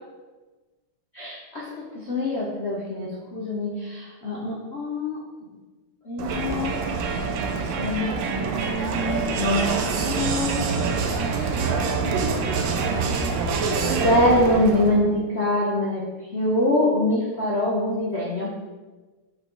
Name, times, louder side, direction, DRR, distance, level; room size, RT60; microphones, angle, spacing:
voice 1, 1.1-5.2 6.0-7.3 7.8-8.1 8.4-10.6 11.1-11.6 14.0-16.1 16.3-18.5, left 1 dB, 70° left, -5 dB, 0.6 m, -25 dB
Crowd, 6.2-15.0, right 4 dB, 75° right, 1.3 m, -25 dB
5.5 x 3.9 x 4.5 m, 1.2 s
omnidirectional pair, 2.4 m